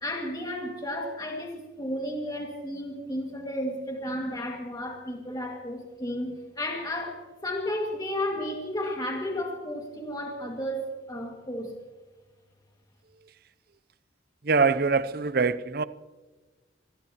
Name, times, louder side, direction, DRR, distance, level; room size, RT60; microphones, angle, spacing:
voice 1, 0.0-11.7, left 1 dB, 20° left, 0 dB, 2.1 m, -33 dB
voice 2, 14.4-15.8, right 4 dB, 55° right, 14 dB, 0.6 m, -23 dB
26.5 x 18.0 x 3.0 m, 1.3 s
head